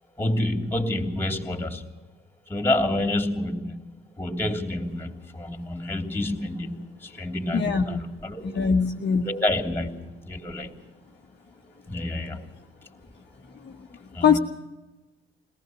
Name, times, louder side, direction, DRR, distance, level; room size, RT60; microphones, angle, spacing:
voice 1, 0.2-1.9 2.5-8.7 9.2-10.8 11.9-12.5 14.1-14.4, left 1 dB, 5° left, 4 dB, 3.1 m, -28 dB
voice 2, 7.5-8.0 8.4-9.3 13.6-14.4, left 6 dB, 35° left, 1 dB, 1.3 m, -23 dB
22.5 x 18.5 x 6.3 m, 1.1 s
hypercardioid pair, 55°, 30 cm